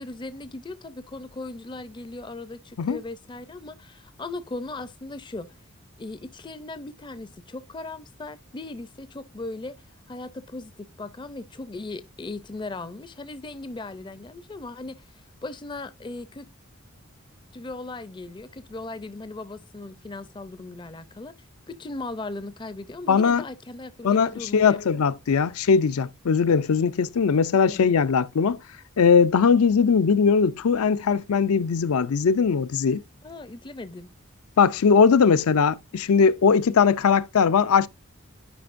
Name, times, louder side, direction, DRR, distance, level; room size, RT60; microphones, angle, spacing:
voice 1, 0.0-5.5 6.0-9.8 10.1-16.5 17.5-21.3 21.7-24.8 27.7-27.9 33.2-34.1, left 2 dB, 20° left, 0.4 m, -38 dB
voice 2, 23.1-23.4 24.0-28.6 29.0-33.0 34.6-37.9, left 6 dB, 85° left, 0.5 m, -20 dB
10.0 x 5.1 x 2.5 m
head